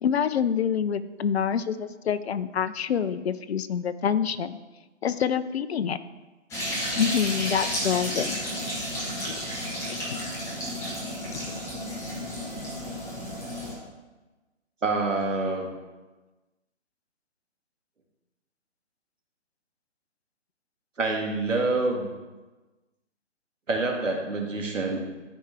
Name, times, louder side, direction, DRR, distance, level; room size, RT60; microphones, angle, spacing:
voice 1, 0.0-4.6 5.0-6.0 7.0-8.4 9.9-10.0 11.3-11.6, left 7 dB, 60° left, 13 dB, 0.6 m, -26 dB
sound 1, 6.5-13.7, equal, 10° left, 1.2 m, -32 dB
voice 2, 14.8-15.7 21.0-22.1 23.7-25.0, right 3 dB, 90° right, 1 dB, 2.0 m, -26 dB
13.0 x 4.7 x 3.4 m, 1.2 s
figure-of-eight pair, 145°, 37 cm